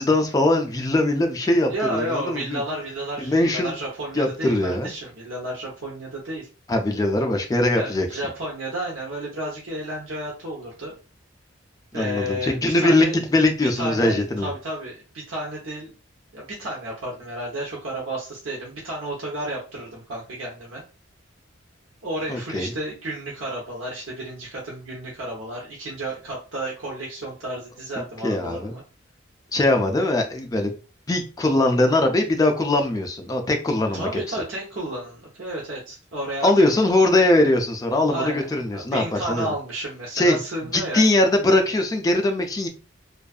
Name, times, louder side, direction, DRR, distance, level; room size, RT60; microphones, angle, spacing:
voice 1, 0.0-2.6 3.2-3.7 4.2-4.9 6.7-8.1 11.9-13.1 13.3-14.5 22.3-22.7 28.2-28.7 29.5-30.7 31.1-34.4 36.4-39.5 40.1-40.4 40.7-42.7, left 1 dB, 20° left, 0.4 m, -21 dB
voice 2, 1.7-6.5 7.7-10.9 11.9-13.2 13.7-15.9 16.3-20.8 22.0-28.8 33.9-36.8 38.1-38.5 38.7-41.1, right 1 dB, 85° right, 0.8 m, -32 dB
2.6 x 2.3 x 2.3 m
head